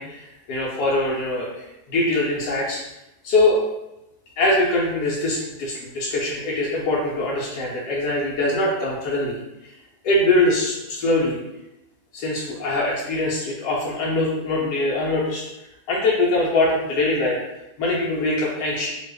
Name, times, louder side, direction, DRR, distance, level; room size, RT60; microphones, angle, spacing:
voice 1, 0.0-2.8 3.2-3.7 4.4-9.3 9.6-9.7 10.0-11.4 12.1-15.4 15.9-18.9, left 2 dB, 85° left, -4 dB, 1.2 m, -23 dB
2.9 x 2.3 x 3.3 m, 0.91 s
omnidirectional pair, 1.7 m